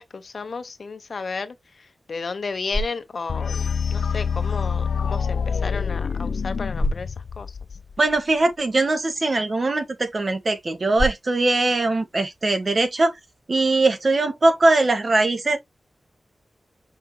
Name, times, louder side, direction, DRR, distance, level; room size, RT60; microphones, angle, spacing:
voice 1, 0.0-1.5 2.1-3.6 3.9-7.5, left 4 dB, 65° left, 1.1 m, -33 dB
sound 1, 2.3-13.4, equal, 10° right, 3.1 m, -36 dB
sound 2, 3.3-8.2, left 6 dB, 80° left, 0.4 m, -26 dB
voice 2, 8.0-13.1 13.5-15.6, right 2 dB, 45° right, 1.8 m, -21 dB
6.0 x 5.4 x 3.0 m
wide cardioid pair, 100°, 0 cm